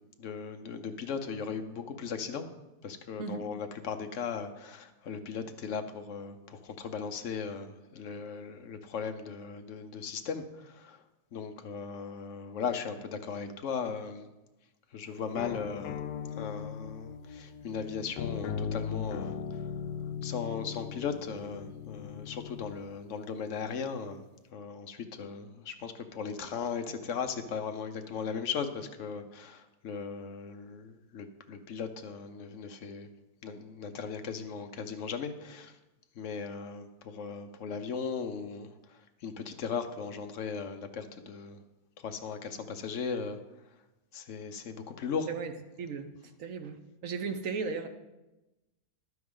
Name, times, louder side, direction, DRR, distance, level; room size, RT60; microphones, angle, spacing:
voice 1, 0.2-2.5 2.8-11.0 11.3-14.3 14.9-16.0 16.3-19.4 20.2-24.2 24.5-33.1 33.4-35.7 36.2-38.7 39.2-41.6 42.0-43.4 44.1-45.3, left 6 dB, 55° left, 7 dB, 0.9 m, -37 dB
sound 1, 15.4-22.8, left 7 dB, 80° left, 1.3 m, -38 dB
voice 2, 45.3-46.1 46.4-47.9, right 5 dB, 60° right, 8 dB, 1.0 m, -36 dB
11.5 x 9.4 x 3.7 m, 1.0 s
omnidirectional pair, 1.8 m